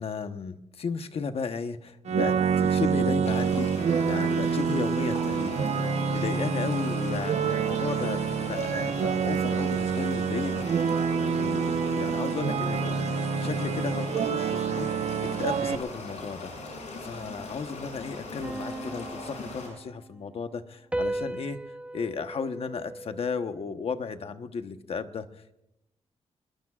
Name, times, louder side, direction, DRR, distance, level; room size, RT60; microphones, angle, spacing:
voice 1, 0.0-3.7 4.0-16.5 16.9-21.6 21.9-25.3, left 5 dB, 55° left, 8 dB, 1.1 m, -34 dB
sound 1, 2.0-15.7, right 6 dB, 65° right, 1.0 m, -27 dB
sound 2, 3.2-19.7, left 3 dB, 80° left, 7.5 m, -40 dB
sound 3, 18.4-20.2 20.9-23.5, right 1 dB, 10° right, 0.8 m, -36 dB
26.5 x 22.0 x 2.4 m, 0.86 s
wide cardioid pair, 120°, 12 cm